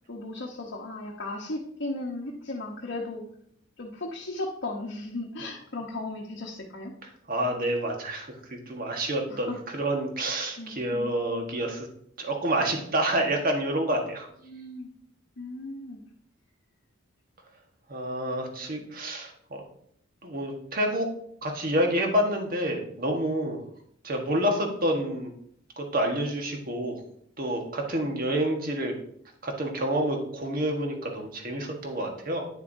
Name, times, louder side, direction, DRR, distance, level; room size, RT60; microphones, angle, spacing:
voice 1, 0.1-3.2 3.8-6.9 9.3-9.6 10.6-11.3 14.4-14.9 15.4-16.0 18.4-18.5, left 2 dB, 60° left, -2 dB, 1.0 m, -36 dB
voice 2, 7.3-11.9 12.2-14.3 17.9-19.3 20.2-21.1 21.4-23.6 24.0-25.3 25.8-26.9 27.4-28.9 29.4-32.5, right 1 dB, 45° right, 2 dB, 1.4 m, -28 dB
9.8 x 6.7 x 2.7 m, 0.67 s
head